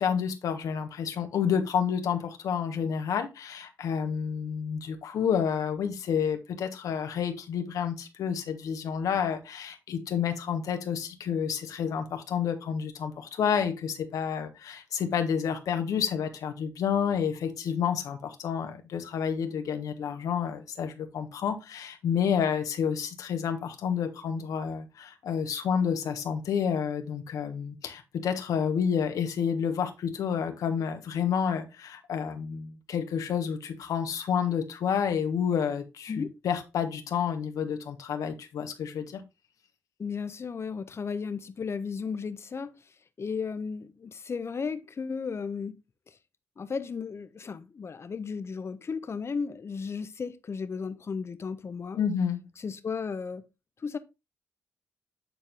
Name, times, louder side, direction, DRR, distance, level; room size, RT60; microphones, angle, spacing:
voice 1, 0.0-39.2 52.0-52.4, left 7 dB, 75° left, 1.3 m, -29 dB
voice 2, 40.0-42.7 43.2-45.8 46.1-46.2 46.6-52.0 52.6-53.5 53.8-54.0, left 5 dB, 45° left, 1.0 m, -34 dB
9.5 x 4.3 x 3.5 m
supercardioid pair, 50°, 6 cm